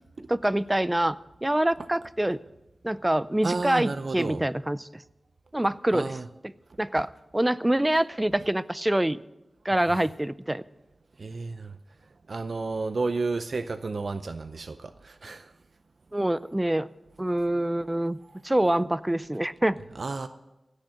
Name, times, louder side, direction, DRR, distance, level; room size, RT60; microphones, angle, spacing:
voice 1, 0.3-2.4 2.8-5.0 5.5-6.2 6.4-6.5 6.8-9.2 9.6-10.6 16.1-16.9 17.2-18.2 18.4-19.8, right 1 dB, 15° right, 0.4 m, -25 dB
voice 2, 3.4-4.4 5.9-6.3 11.2-11.7 12.3-15.5 20.0-20.3, right 3 dB, 65° right, 0.5 m, -31 dB
16.5 x 6.5 x 8.6 m
wide cardioid pair, 80°, 0 cm